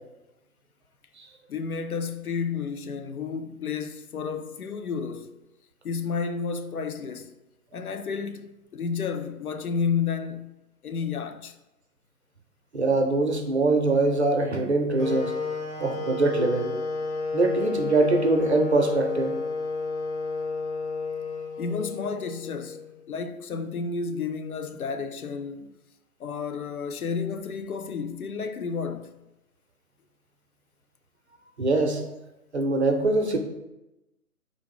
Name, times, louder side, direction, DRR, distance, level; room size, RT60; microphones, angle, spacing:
voice 1, 1.5-5.3 5.8-7.3 7.7-10.5 10.8-11.6 21.6-22.8 23.1-25.8 26.2-29.1, left 5 dB, 65° left, 0.5 m, -31 dB
voice 2, 12.7-15.4 15.8-16.7 17.3-19.3 31.6-32.0 32.5-33.4, right 3 dB, 45° right, 0.6 m, -23 dB
sound 1, 15.0-23.0, left 4 dB, 50° left, 1.2 m, -31 dB
4.0 x 2.7 x 4.8 m
figure-of-eight pair, 140°, 46 cm